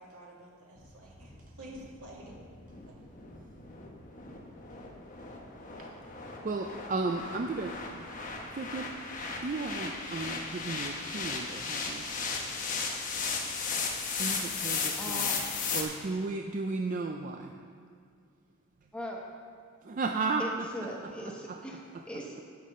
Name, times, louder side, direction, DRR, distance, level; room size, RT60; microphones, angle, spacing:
voice 1, 0.0-2.3 2.9-3.0, right 1 dB, 80° right, -3 dB, 2.2 m, -49 dB
sound 1, 0.8-15.8, left 5 dB, 35° left, 1.0 m, -36 dB
voice 2, 6.4-8.0 8.5-8.9 9.4-12.0 14.2-15.4 15.7-17.5 19.8-20.9 21.5-21.6, right 3 dB, 35° right, 4 dB, 0.3 m, -34 dB
voice 3, 14.9-15.4 18.9-19.2 20.4-21.8 22.1-22.4, equal, 5° left, -1 dB, 0.9 m, -39 dB
9.3 x 5.9 x 6.5 m, 2.3 s
head